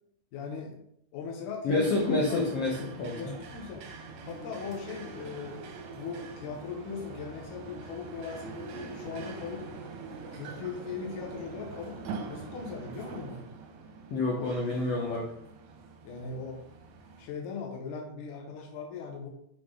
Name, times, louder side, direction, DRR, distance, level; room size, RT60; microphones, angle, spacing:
voice 1, 0.3-0.8 1.1-2.4 3.2-3.9 4.2-5.6 5.9-9.7 10.3-12.0 12.3-13.5 16.0-16.6 17.2-19.3, left 5 dB, 70° left, 0 dB, 2.1 m, -39 dB
voice 2, 1.6-3.3 14.1-15.2, left 2 dB, 85° left, -2 dB, 1.3 m, -28 dB
sound 1, 1.8-17.3, right 4 dB, 75° right, 1.6 m, -44 dB
6.9 x 3.8 x 3.6 m, 0.74 s
omnidirectional pair, 4.0 m